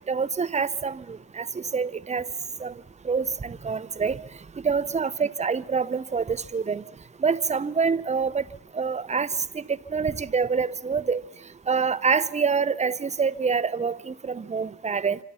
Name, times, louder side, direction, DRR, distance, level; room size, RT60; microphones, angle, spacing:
voice 1, 0.1-2.3 2.6-2.7 3.0-4.2 4.6-6.8 7.2-8.4 8.7-11.2 11.7-15.2, right 5 dB, 20° right, 0.8 m, -26 dB
26.5 x 26.0 x 5.7 m
cardioid pair, 90°, 30 cm